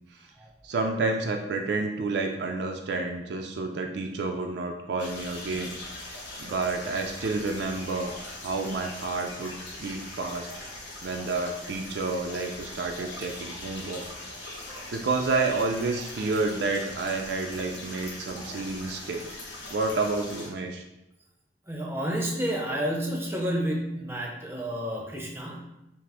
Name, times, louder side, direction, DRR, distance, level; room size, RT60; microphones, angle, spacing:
voice 1, 0.6-5.8 6.4-8.2 8.4-10.5 11.0-14.0 14.9-19.4 19.7-20.8, right 3 dB, 60° right, 3 dB, 0.4 m, -30 dB
sound 1, 5.0-20.5, left 2 dB, 75° left, 1.4 m, -41 dB
voice 2, 21.7-25.6, equal, 10° right, -1 dB, 0.6 m, -30 dB
5.7 x 2.0 x 3.4 m, 0.91 s
head